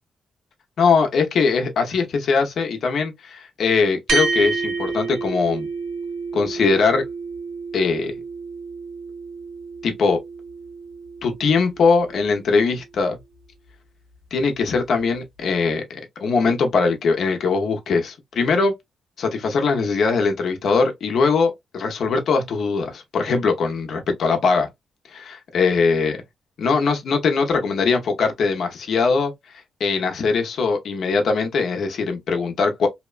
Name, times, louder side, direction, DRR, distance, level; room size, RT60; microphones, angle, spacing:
voice 1, 0.8-5.7 6.3-7.0 7.7-8.1 9.8-10.2 11.2-13.2 14.3-18.7 19.2-24.7 25.1-26.2 26.6-29.3 29.8-32.9, left 4 dB, 70° left, 0.7 m, -21 dB
sound 1, 4.1-12.8, right 4 dB, 90° right, 1.1 m, -30 dB
2.8 x 2.1 x 2.3 m
cardioid pair, 105°, 0 cm